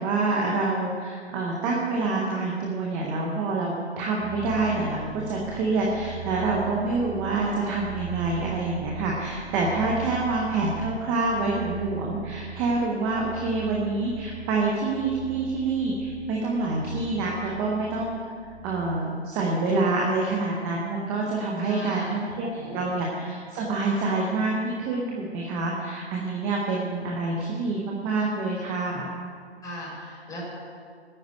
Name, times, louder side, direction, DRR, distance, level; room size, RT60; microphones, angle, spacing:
voice 1, 0.0-18.2 18.6-29.1, right 3 dB, 5° right, -2 dB, 0.5 m, -27 dB
sound 1, 4.2-19.0, right 7 dB, 25° right, 1.5 m, -40 dB
voice 2, 21.6-22.1 22.5-22.8 29.6-30.4, equal, 10° left, -6 dB, 5.4 m, -38 dB
14.0 x 9.6 x 9.0 m, 2.1 s
figure-of-eight pair, 140°, 34 cm